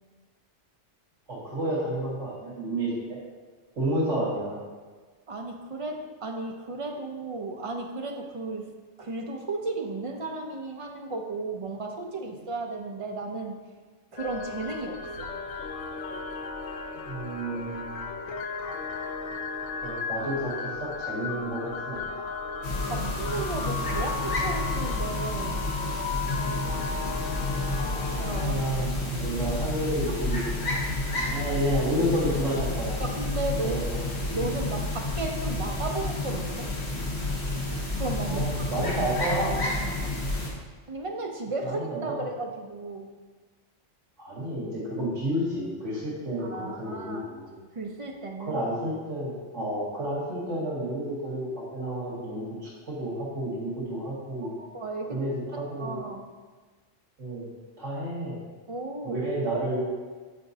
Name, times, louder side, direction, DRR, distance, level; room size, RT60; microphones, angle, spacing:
voice 1, 1.3-3.2 3.8-4.6 16.9-18.1 19.8-22.3 23.0-23.1 28.4-31.0 31.3-33.0 33.6-34.0 38.3-39.6 41.6-42.2 44.2-47.6 48.4-54.5 55.1-56.0 57.2-57.5 57.8-58.4 59.0-59.9, right 1 dB, 85° right, -8 dB, 2.2 m, -31 dB
voice 2, 5.3-8.7 9.0-13.6 14.1-15.3 22.9-25.6 28.2-28.6 30.7-31.0 33.0-33.8 34.3-36.7 38.0-38.5 38.8-39.1 39.7-40.1 40.9-43.1 46.4-47.3 47.8-48.6 54.6-55.3 55.8-56.3 58.7-59.2, right 3 dB, 35° right, 2 dB, 0.5 m, -34 dB
sound 1, 14.2-28.5, left 4 dB, 80° left, 0.9 m, -35 dB
sound 2, 22.6-40.5, left 2 dB, 65° left, 1.3 m, -30 dB
8.5 x 5.1 x 2.7 m, 1.4 s
omnidirectional pair, 1.2 m